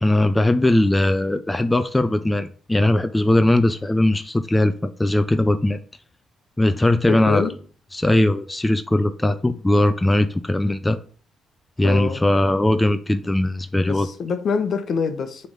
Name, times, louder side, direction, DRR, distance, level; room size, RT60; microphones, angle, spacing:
voice 1, 0.0-5.8 6.6-7.5 7.9-11.0 11.8-14.1, left 1 dB, 10° left, 0.5 m, -19 dB
voice 2, 7.1-7.5 11.8-12.2 13.9-15.5, left 5 dB, 60° left, 1.0 m, -25 dB
6.9 x 3.4 x 5.3 m
cardioid pair, 90°, 0 cm